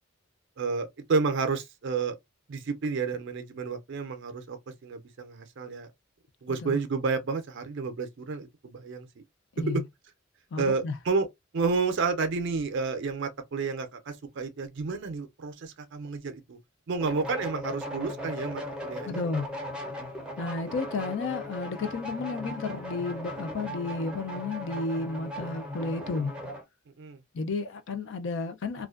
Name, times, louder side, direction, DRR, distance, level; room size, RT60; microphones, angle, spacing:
voice 1, 0.6-2.2 2.5-4.6 4.8-5.9 6.4-9.1 9.7-9.8 10.6-11.3 11.5-16.6 16.9-19.2 27.0-27.2, right 4 dB, 60° right, 0.5 m, -30 dB
voice 2, 6.5-6.8 9.6-9.9 10.5-11.0 19.0-19.5 20.4-26.3 27.3-28.9, left 3 dB, 60° left, 0.4 m, -32 dB
sound 1, 17.0-26.6, left 1 dB, 5° right, 0.6 m, -38 dB
2.4 x 2.1 x 2.3 m
head